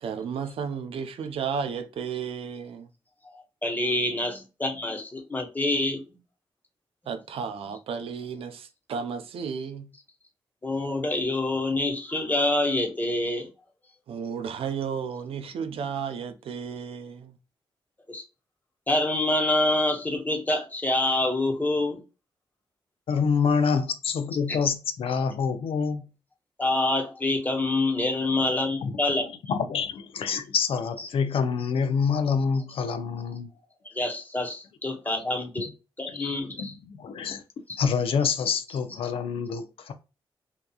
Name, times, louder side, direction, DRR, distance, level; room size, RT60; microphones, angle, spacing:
voice 1, 0.0-2.9 7.1-9.9 14.1-17.4, right 6 dB, 85° right, 0.5 m, -33 dB
voice 2, 3.2-6.0 7.0-7.1 7.6-7.7 10.6-13.5 18.1-18.2 18.9-22.0 24.5-24.6 26.6-29.3 31.0-31.1 33.9-35.7 36.0-36.7, left 2 dB, 20° left, 0.9 m, -26 dB
voice 3, 23.1-26.1 28.8-29.0 29.5-33.5 36.1-37.4 37.8-39.9, left 6 dB, 80° left, 0.5 m, -27 dB
2.8 x 2.3 x 2.2 m
cardioid pair, 85°, 9 cm